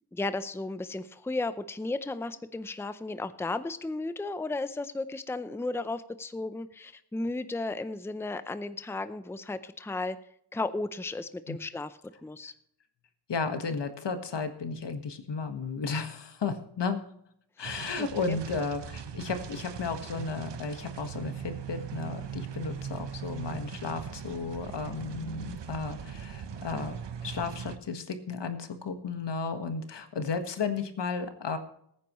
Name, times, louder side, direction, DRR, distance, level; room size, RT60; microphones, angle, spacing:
voice 1, 0.1-10.2 10.5-12.5 18.0-18.4, left 2 dB, 5° left, 12 dB, 0.6 m, -34 dB
voice 2, 13.3-17.0 17.6-27.0 27.2-31.6, left 4 dB, 85° left, 7 dB, 1.6 m, -34 dB
sound 1, 17.6-27.8, right 7 dB, 85° right, 1.1 m, -40 dB
21.5 x 9.4 x 3.1 m, 0.71 s
wide cardioid pair, 135°, 41 cm